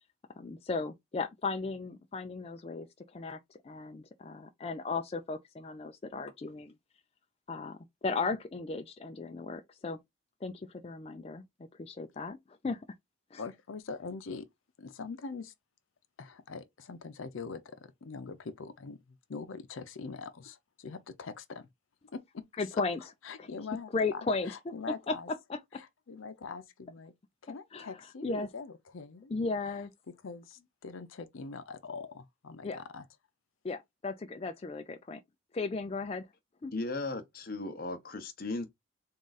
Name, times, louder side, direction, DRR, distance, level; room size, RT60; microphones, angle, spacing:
voice 1, 0.4-2.9 3.1-6.7 7.5-10.0 10.4-11.4 11.8-12.4 12.6-12.8 13.3-13.4 22.6-23.0 23.4-23.5 23.9-24.6 25.1-25.2 25.5-25.8 27.7-27.9 28.2-28.5 29.3-29.9 32.6-32.8 33.6-35.2 35.5-36.3 36.6-36.7, left 3 dB, 30° left, 0.3 m, -35 dB
voice 2, 13.4-14.5 14.8-15.5 16.2-21.7 22.1-22.5 22.7-22.8 23.2-25.3 25.7-27.1 27.4-29.4 29.6-33.1, left 4 dB, 85° left, 0.6 m, -43 dB
voice 3, 36.7-38.7, left 2 dB, 45° left, 0.8 m, -36 dB
3.7 x 2.4 x 3.9 m
head